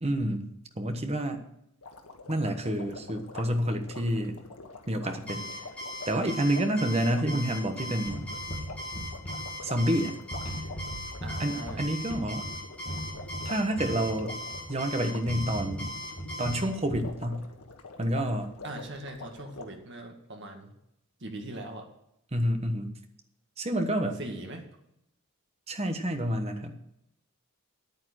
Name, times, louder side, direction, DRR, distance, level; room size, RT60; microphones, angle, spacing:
voice 1, 0.0-0.5 0.8-1.5 2.3-4.4 4.9-5.5 6.1-8.3 9.6-10.1 11.4-12.4 13.4-14.4 14.7-15.9 16.4-17.4 18.0-18.5 22.3-22.9 23.6-24.2 25.7-26.8, right 1 dB, 30° right, 6 dB, 1.2 m, -28 dB
sound 1, 1.8-19.6, left 3 dB, 80° left, 1.6 m, -46 dB
Alarm, 5.3-16.6, left 1 dB, 5° left, 5.7 m, -39 dB
sound 2, 8.1-10.0 10.3-14.8 15.3-17.2, equal, 25° left, 2.2 m, -39 dB
voice 2, 11.2-11.9 18.6-20.7 21.2-21.9 24.2-24.6, right 1 dB, 50° right, 3 dB, 2.0 m, -40 dB
9.4 x 9.1 x 6.3 m, 0.79 s
head